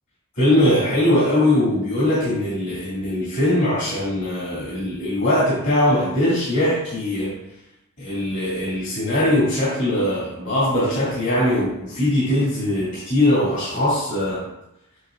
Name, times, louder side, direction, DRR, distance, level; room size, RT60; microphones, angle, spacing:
voice 1, 0.4-7.4 8.0-14.5, left 1 dB, 55° left, -8 dB, 2.6 m, -21 dB
8.0 x 6.1 x 2.5 m, 0.87 s
head